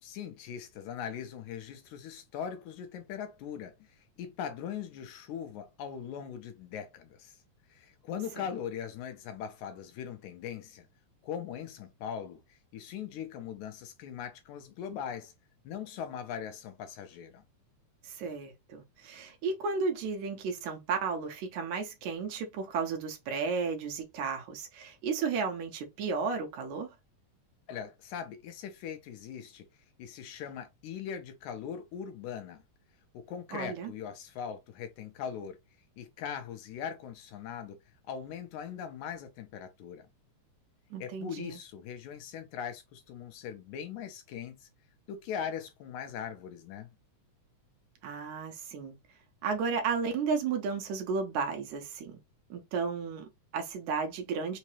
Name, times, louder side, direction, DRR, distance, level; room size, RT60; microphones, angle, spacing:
voice 1, 0.0-7.4 7.7-10.9 11.2-15.3 15.6-17.4 27.7-29.7 30.0-32.6 33.1-35.6 36.0-37.8 38.1-40.1 41.0-44.7 45.1-46.9, left 8 dB, 90° left, 2.1 m, -40 dB
voice 2, 18.0-26.9 33.5-33.9 40.9-41.6 48.0-48.9 49.4-52.2 52.5-54.6, right 5 dB, 80° right, 2.2 m, -33 dB
5.6 x 2.0 x 2.9 m
omnidirectional pair, 3.4 m